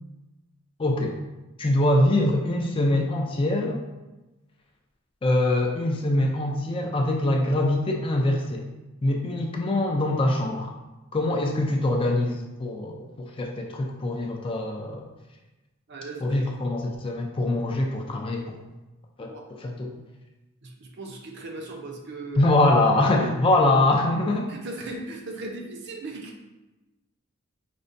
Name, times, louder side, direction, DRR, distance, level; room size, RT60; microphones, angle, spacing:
voice 1, 0.8-1.2 1.6-3.8 5.2-8.7 9.0-10.7 11.1-15.1 16.2-18.6 19.2-19.3 19.6-19.9 22.4-24.5, left 1 dB, 25° left, 1 dB, 0.3 m, -23 dB
voice 2, 15.9-16.4 19.2-19.4 20.6-22.4 23.2-23.3 24.5-26.5, right 2 dB, 55° right, 1 dB, 0.5 m, -38 dB
5.1 x 2.1 x 2.5 m, 1.1 s
head